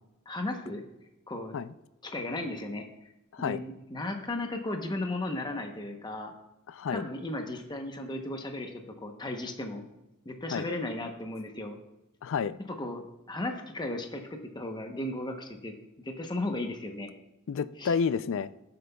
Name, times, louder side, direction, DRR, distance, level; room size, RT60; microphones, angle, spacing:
voice 1, 0.3-0.8 1.3-1.5 2.0-2.8 3.4-6.3 6.9-9.8 10.2-11.8 12.8-17.1 17.8-18.0, left 2 dB, 20° left, 4 dB, 0.8 m, -35 dB
voice 2, 6.7-7.1 10.5-10.7 12.2-12.6 17.5-18.5, left 6 dB, 60° left, 15 dB, 0.4 m, -30 dB
14.5 x 7.8 x 2.3 m, 0.94 s
head